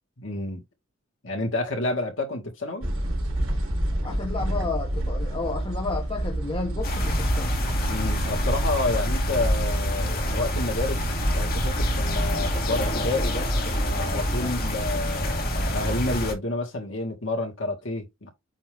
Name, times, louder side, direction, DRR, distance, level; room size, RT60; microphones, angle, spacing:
voice 1, 0.2-0.6 1.2-2.9 7.9-18.3, left 2 dB, 65° left, 2.2 m, -30 dB
sound 1, 2.8-16.3, right 1 dB, 85° right, 3.6 m, -29 dB
voice 2, 4.0-7.6 14.4-14.5, left 3 dB, 25° left, 1.3 m, -32 dB
sound 2, 6.8-16.3, left 1 dB, 45° left, 2.1 m, -27 dB
8.6 x 3.1 x 3.5 m
head